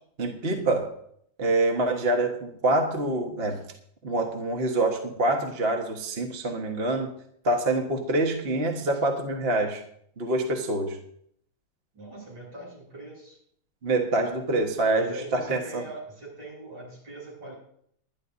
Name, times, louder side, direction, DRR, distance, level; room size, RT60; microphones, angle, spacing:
voice 1, 0.2-0.9 1.4-3.6 4.0-7.1 7.4-9.8 10.2-11.0 13.8-15.8, right 2 dB, 30° right, 2 dB, 1.4 m, -26 dB
voice 2, 11.9-13.4 14.9-17.6, right 1 dB, 65° right, -3 dB, 8.2 m, -41 dB
21.0 x 11.5 x 2.7 m, 0.66 s
omnidirectional pair, 2.3 m